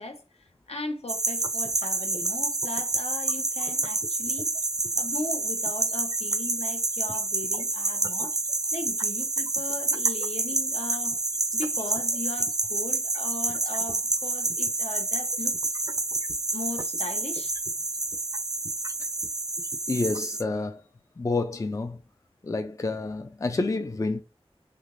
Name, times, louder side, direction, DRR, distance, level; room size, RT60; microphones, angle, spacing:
voice 1, 0.0-4.5 5.0-8.4 8.7-11.2 11.5-15.5 16.5-17.5, left 2 dB, 80° left, 0.8 m, -38 dB
sound 1, 1.1-20.4, right 2 dB, 35° right, 0.5 m, -28 dB
voice 2, 19.9-20.8 21.2-22.0 22.4-24.2, left 3 dB, 30° left, 0.3 m, -28 dB
3.4 x 2.8 x 2.5 m
wide cardioid pair, 50°, 10 cm